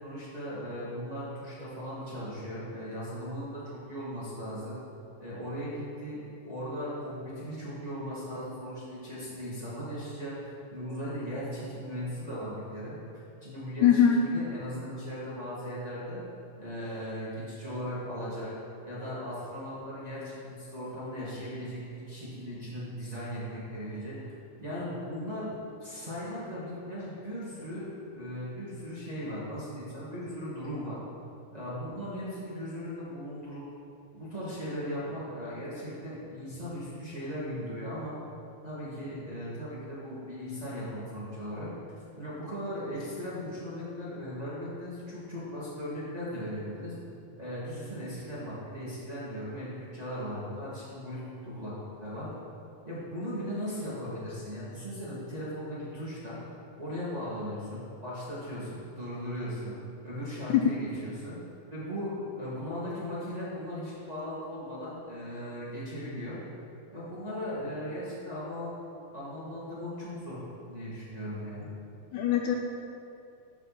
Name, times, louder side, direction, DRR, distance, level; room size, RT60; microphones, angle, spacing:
voice 1, 0.0-4.8 5.2-13.0 13.4-16.2 16.6-18.5 18.8-24.2 24.6-25.5 25.8-31.0 31.5-33.6 34.1-38.1 38.6-41.7 42.2-46.9 47.4-52.3 52.8-56.4 56.8-59.8 60.0-61.4 61.7-66.4 66.9-68.8 69.1-71.7, equal, 15° right, -10 dB, 1.7 m, -38 dB
voice 2, 13.8-14.2 60.5-60.6 72.1-72.6, left 9 dB, 80° left, 1 dB, 1.9 m, -21 dB
13.0 x 5.4 x 4.3 m, 2.6 s
omnidirectional pair, 3.7 m